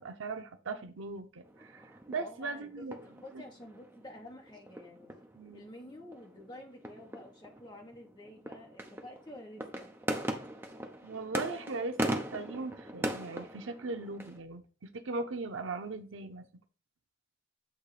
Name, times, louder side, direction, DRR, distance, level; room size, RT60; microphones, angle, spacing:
voice 1, 0.0-2.9 3.3-3.4 5.4-5.7 11.0-16.5, right 3 dB, 85° right, 8 dB, 0.8 m, -39 dB
sound 1, 1.5-14.4, right 1 dB, 10° right, 0.7 m, -40 dB
voice 2, 2.2-5.1 5.5-9.9, left 1 dB, 25° left, 1 dB, 1.5 m, -50 dB
8.2 x 3.0 x 4.9 m, 0.36 s
head